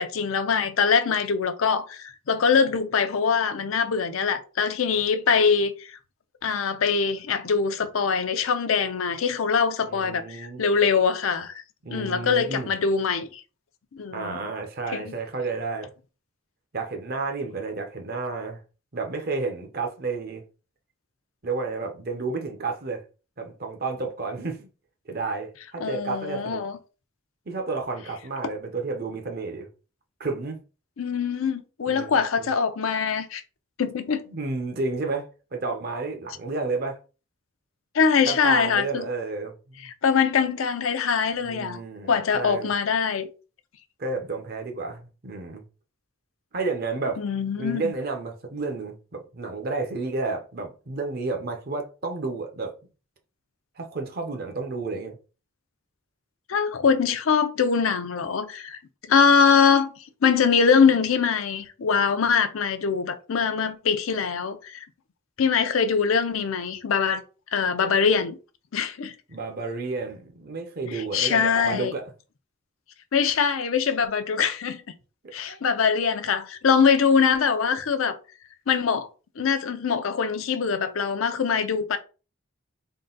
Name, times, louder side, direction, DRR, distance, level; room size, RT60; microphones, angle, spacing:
voice 1, 0.0-6.0 6.4-11.6 11.9-13.4 13.9-14.4 14.9-15.1 25.8-26.8 31.0-33.4 33.8-34.2 37.9-39.0 39.8-41.8 42.1-43.3 47.2-47.9 56.5-58.8 59.1-59.9 60.2-64.8 65.4-67.2 67.5-68.4 68.7-69.1 70.9-71.9 73.1-74.8 75.3-78.1 78.7-79.1 79.4-82.0, left 6 dB, 85° left, 0.5 m, -23 dB
voice 2, 9.8-10.6 11.8-12.7 14.1-15.9 16.7-18.6 18.9-20.4 21.4-23.0 23.4-24.7 25.1-26.6 27.5-29.7 30.2-30.6 31.9-32.5 34.3-37.0 38.2-39.9 41.4-42.7 44.0-45.6 46.5-47.2 47.6-52.7 53.8-55.2 69.3-72.1 75.2-75.6, right 3 dB, 50° right, 0.7 m, -31 dB
3.7 x 2.2 x 3.8 m
head